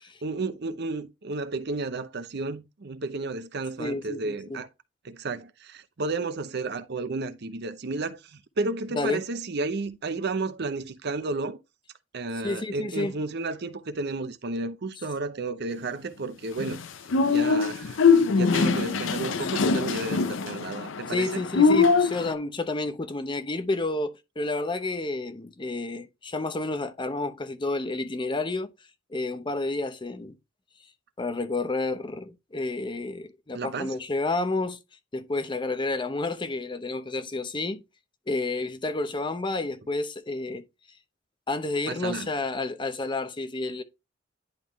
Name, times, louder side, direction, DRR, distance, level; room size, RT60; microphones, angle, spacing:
voice 1, 0.2-4.7 5.0-11.6 12.1-16.8 17.3-21.4 33.5-33.9 41.9-42.3, right 3 dB, 60° right, 0.7 m, -32 dB
voice 2, 3.8-4.6 8.9-9.2 12.4-13.1 21.1-28.7 29.1-30.4 31.2-34.8 35.1-37.8 38.3-40.6 41.5-43.8, left 2 dB, 25° left, 0.7 m, -30 dB
sound 1, 16.6-22.3, left 5 dB, 70° left, 0.5 m, -23 dB
10.5 x 3.6 x 3.1 m
head